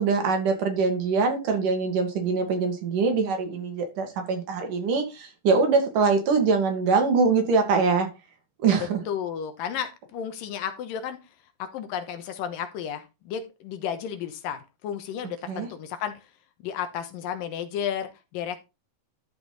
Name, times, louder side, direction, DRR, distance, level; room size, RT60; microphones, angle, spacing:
voice 1, 0.0-8.1 8.6-9.0 15.5-15.7, right 4 dB, 65° right, 4 dB, 3.6 m, -23 dB
voice 2, 8.7-11.2 11.6-16.3 16.6-18.7, left 8 dB, 80° left, 9 dB, 2.7 m, -33 dB
12.0 x 5.1 x 4.1 m, 0.26 s
omnidirectional pair, 4.0 m